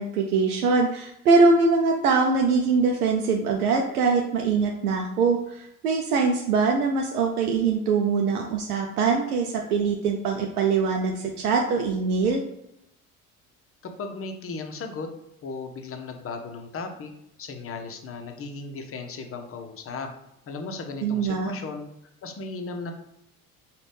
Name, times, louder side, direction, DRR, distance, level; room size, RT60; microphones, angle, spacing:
voice 1, 0.0-12.4 21.0-21.5, right 4 dB, 80° right, 2 dB, 0.6 m, -23 dB
voice 2, 13.8-15.1 15.4-17.1 17.4-20.1 20.5-21.9 22.2-22.9, left 4 dB, 30° left, 5 dB, 0.8 m, -36 dB
5.1 x 2.5 x 3.3 m, 0.80 s
figure-of-eight pair, 60°, 44 cm